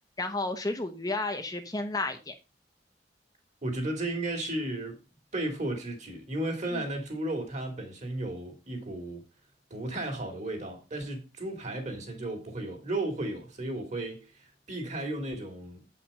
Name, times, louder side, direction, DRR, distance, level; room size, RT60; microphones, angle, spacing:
voice 1, 0.2-2.3 6.7-6.8, left 2 dB, 20° left, 0.8 m, -32 dB
voice 2, 3.6-5.0 5.3-9.2 9.7-15.8, right 1 dB, 40° right, 2.7 m, -34 dB
8.3 x 5.7 x 5.4 m
head